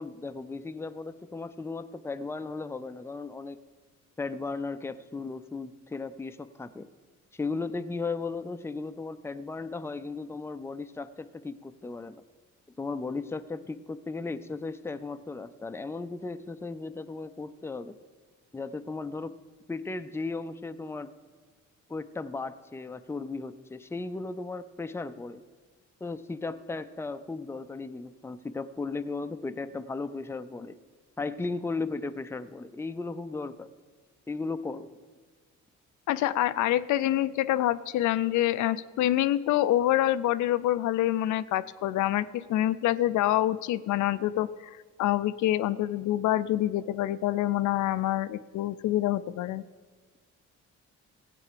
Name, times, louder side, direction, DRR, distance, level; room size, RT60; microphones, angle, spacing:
voice 1, 0.0-3.6 4.2-6.9 7.3-12.2 12.8-18.0 18.5-19.4 19.7-21.1 21.9-25.4 26.0-30.8 31.2-33.7 34.3-34.9, left 3 dB, 10° left, 10 dB, 0.5 m, -36 dB
voice 2, 36.1-49.6, left 13 dB, 75° left, 14 dB, 0.5 m, -26 dB
15.0 x 8.5 x 5.0 m, 1.5 s
cardioid pair, 90°, 30 cm